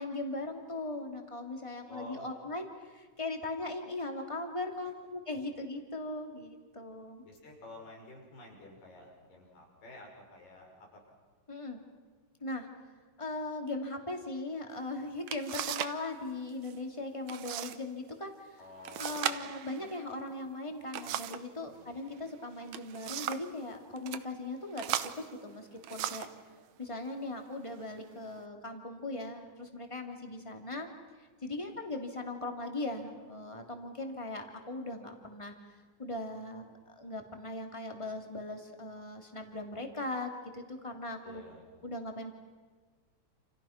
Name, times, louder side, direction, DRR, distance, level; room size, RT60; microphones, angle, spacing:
voice 1, 0.0-7.2 11.5-11.8 12.4-12.7 13.2-18.6 19.0-24.8 25.2-26.3 26.8-30.9 31.2-35.5 36.0-41.4 41.8-42.3, left 2 dB, 10° left, 3 dB, 2.4 m, -39 dB
voice 2, 1.9-2.3 7.2-11.0 18.6-19.3 21.6-22.0 31.6-31.8 41.2-41.7, left 1 dB, 80° left, 0 dB, 7.5 m, -51 dB
sound 1, 14.8-14.9 15.3-16.0 16.3-16.8 17.3-17.8 18.1-18.2 18.9-21.5 22.5-23.5 24.0-24.2 24.8-26.4 27.2-27.3 27.9-28.4, right 11 dB, 70° right, 2.0 m, -37 dB
29.0 x 29.0 x 5.9 m, 1.4 s
omnidirectional pair, 3.8 m